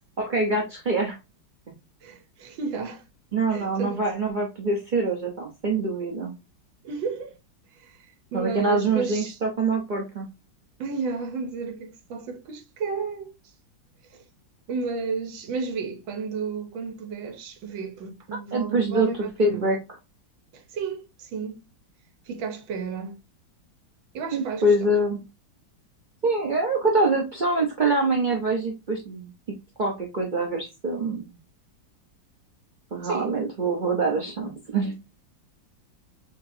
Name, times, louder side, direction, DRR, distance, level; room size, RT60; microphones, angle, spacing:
voice 1, 0.2-1.2 3.3-6.3 8.3-10.3 18.5-19.1 19.4-19.8 24.3-25.2 26.2-29.3 29.8-31.4 32.9-34.9, right 2 dB, 60° right, 0.5 m, -25 dB
voice 2, 2.0-3.0 3.5-4.0 6.8-7.3 7.7-8.0 8.3-9.4 10.8-13.3 14.1-14.2 14.7-19.7 20.5-21.6 22.3-23.2 24.1-24.7 33.0-33.3, right 5 dB, 80° right, 1.6 m, -32 dB
6.5 x 3.0 x 2.6 m
omnidirectional pair, 2.1 m